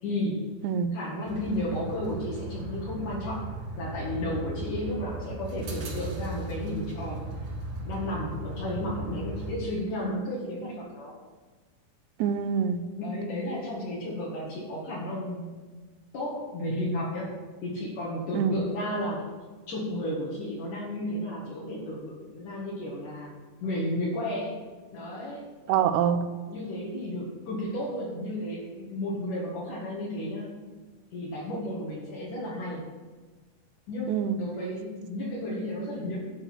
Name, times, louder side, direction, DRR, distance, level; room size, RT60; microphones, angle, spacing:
voice 1, 0.0-0.5 0.9-3.5 3.8-7.2 7.8-11.1 13.0-15.6 16.1-19.2 19.7-23.3 23.6-24.6 24.9-25.4 26.5-30.7 31.1-32.9 33.9-36.3, left 1 dB, 65° left, -5 dB, 3.2 m, -33 dB
sound 1, 1.3-9.6, right 2 dB, 50° right, 2.7 m, -37 dB
voice 2, 12.2-12.9 18.3-18.5 25.7-26.2 34.1-34.4, right 8 dB, 75° right, 9 dB, 1.8 m, -25 dB
11.0 x 5.3 x 7.6 m, 1.3 s
omnidirectional pair, 3.9 m